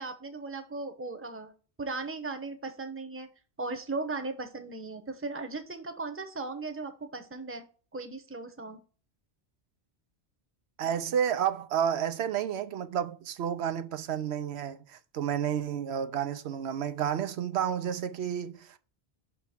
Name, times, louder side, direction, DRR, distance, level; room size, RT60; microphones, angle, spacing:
voice 1, 0.0-3.3 3.6-7.6 7.9-8.8, right 3 dB, 15° right, 0.7 m, -37 dB
voice 2, 10.8-18.8, right 9 dB, 85° right, 0.9 m, -31 dB
5.7 x 3.8 x 5.7 m
omnidirectional pair, 1.1 m